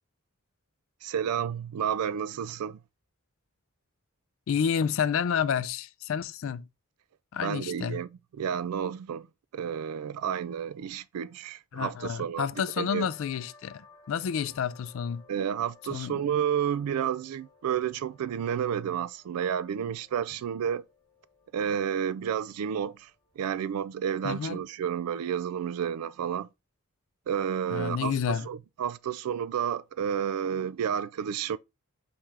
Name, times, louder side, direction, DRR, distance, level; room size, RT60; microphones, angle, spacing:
voice 1, 1.0-2.8 7.4-9.3 9.5-12.5 12.8-13.1 15.3-20.8 21.5-23.1 23.4-26.5 27.3-31.6, right 8 dB, 90° right, 0.3 m, -31 dB
voice 2, 4.5-6.6 7.3-8.0 11.7-15.2 15.9-16.2 24.2-24.6 27.7-28.5, left 7 dB, 60° left, 0.3 m, -30 dB
sound 1, 12.5-23.8, left 4 dB, 25° left, 0.8 m, -59 dB
4.3 x 3.3 x 3.5 m
head